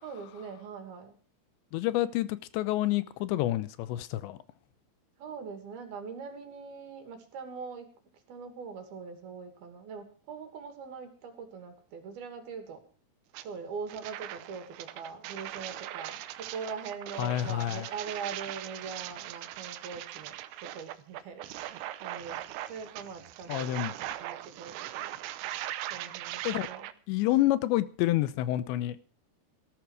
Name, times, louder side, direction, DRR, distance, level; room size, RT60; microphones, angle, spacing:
voice 1, 0.0-1.2 5.2-7.9 8.3-12.8 13.4-25.1 25.9-26.9, right 5 dB, 60° right, 4.2 m, -42 dB
voice 2, 1.7-4.4 17.2-17.8 23.5-23.9 26.4-26.7 27.1-29.0, left 14 dB, 90° left, 3.2 m, -28 dB
sound 1, 13.3-13.5 13.9-26.9, right 14 dB, 85° right, 3.0 m, -40 dB
18.5 x 13.5 x 4.8 m
omnidirectional pair, 5.0 m